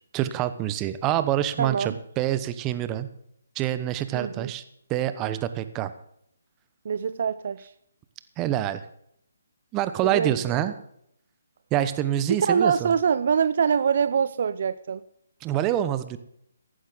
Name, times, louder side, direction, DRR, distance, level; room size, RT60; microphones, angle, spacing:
voice 1, 0.1-3.1 3.6-4.6 4.9-5.9 8.4-8.8 9.7-10.7 11.7-12.9 15.4-16.2, right 12 dB, 20° right, 12 dB, 0.9 m, -26 dB
voice 2, 1.6-1.9 4.1-4.5 6.8-7.7 10.0-10.7 12.4-15.0, right 7 dB, 55° right, 15 dB, 0.5 m, -24 dB
15.0 x 11.5 x 3.9 m, 0.74 s
figure-of-eight pair, 145°, 0 cm